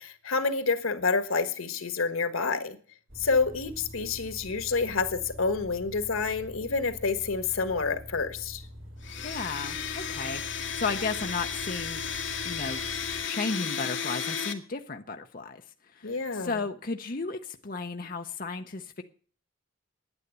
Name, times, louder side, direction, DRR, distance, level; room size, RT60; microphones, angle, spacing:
voice 1, 0.0-2.8 3.2-8.6 16.0-16.6, left 4 dB, 90° left, 11 dB, 1.5 m, -28 dB
sound 1, 3.1-13.2, equal, 80° right, 3.2 m, -45 dB
Domestic sounds home sounds, 9.0-14.5, left 7 dB, 65° left, 1.6 m, -34 dB
voice 2, 9.2-12.0 12.4-12.9 13.2-15.6 15.9-19.0, left 4 dB, 45° left, 5 dB, 0.7 m, -34 dB
9.8 x 9.8 x 8.1 m, 0.42 s
head